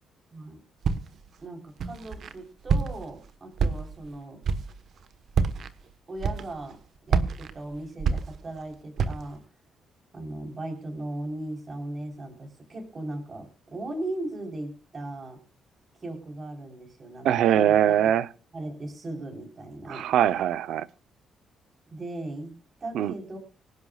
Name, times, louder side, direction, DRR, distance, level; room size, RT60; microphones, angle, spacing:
Walk footsteps, 0.8-1.3 1.8-2.3 2.7-3.2 3.6-4.1 4.4-4.8 5.3-5.7 6.2-6.7 7.1-8.6 9.0-9.4, right 5 dB, 45° right, 1.3 m, -27 dB
voice 1, 1.4-4.4 6.1-6.8 7.1-9.4 10.1-15.4 16.0-17.3 17.6-17.9 18.5-20.1 21.9-23.4, right 2 dB, 25° right, 4.2 m, -37 dB
voice 2, 17.2-18.3 19.9-20.9 22.9-23.1, right 10 dB, 70° right, 0.8 m, -22 dB
25.5 x 11.0 x 2.4 m
cardioid pair, 180°, 0 cm